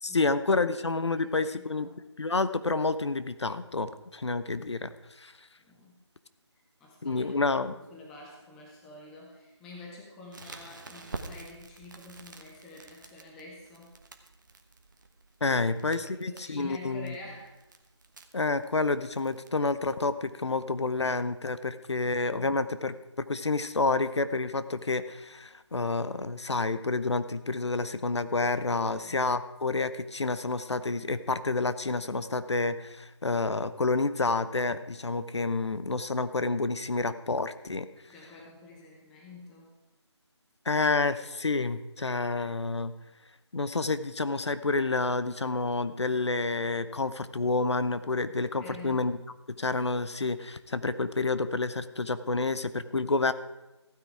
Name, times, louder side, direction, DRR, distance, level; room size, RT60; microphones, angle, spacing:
voice 1, 0.0-1.9 2.2-4.9 5.2-5.3 7.0-7.8 15.4-17.1 18.3-37.9 40.7-42.9 43.5-49.2 49.6-53.3, left 3 dB, 70° left, 13 dB, 0.8 m, -29 dB
voice 2, 1.2-2.0 5.6-6.0 6.5-7.3 7.8-13.9 15.5-15.6 15.9-17.6 28.8-29.2 38.1-39.8 48.6-49.1, left 2 dB, 5° left, -2 dB, 0.5 m, -48 dB
Crackle, 10.3-19.5, right 3 dB, 40° right, 1.1 m, -48 dB
15.0 x 9.4 x 4.8 m, 1.0 s
figure-of-eight pair, 165°, 15 cm